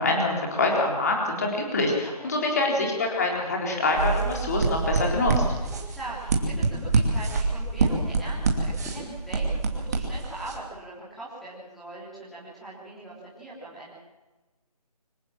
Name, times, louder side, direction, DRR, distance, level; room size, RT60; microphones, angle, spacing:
voice 1, 0.0-5.3, left 2 dB, 25° left, 0 dB, 3.9 m, -25 dB
sound 1, 3.9-10.6, right 3 dB, 25° right, 2.7 m, -26 dB
voice 2, 5.6-13.9, right 2 dB, ahead, -9 dB, 3.4 m, -41 dB
25.0 x 18.0 x 7.5 m, 1.2 s
hypercardioid pair, 175°, 20 cm